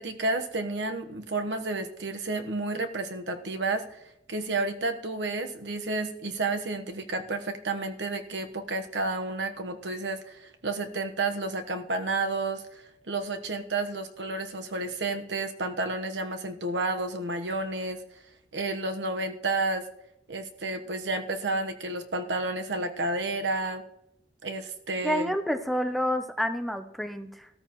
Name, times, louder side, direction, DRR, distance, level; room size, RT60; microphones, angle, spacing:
voice 1, 0.0-4.0 4.3-12.6 13.1-18.0 18.5-19.9 20.3-23.8 24.4-25.3, right 2 dB, 85° right, 6 dB, 1.1 m, -31 dB
voice 2, 25.0-27.5, equal, ahead, 7 dB, 0.6 m, -29 dB
15.5 x 13.5 x 3.0 m, 0.82 s
head